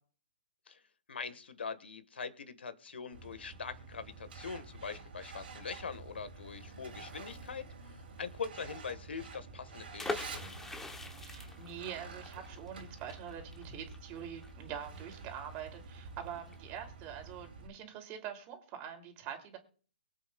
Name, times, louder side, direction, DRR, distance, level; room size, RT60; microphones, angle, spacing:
voice 1, 1.1-10.7, left 5 dB, 80° left, 12 dB, 1.5 m, -43 dB
Truck, 3.1-17.7, right 4 dB, 65° right, 2.8 m, -49 dB
sound 1, 10.0-15.6 15.9-16.0 16.3-16.6, left 3 dB, 5° left, 0.9 m, -43 dB
voice 2, 11.2-19.6, right 9 dB, 30° right, 4 dB, 2.8 m, -45 dB
23.5 x 8.0 x 2.3 m, 0.43 s
hypercardioid pair, 135°, 6 cm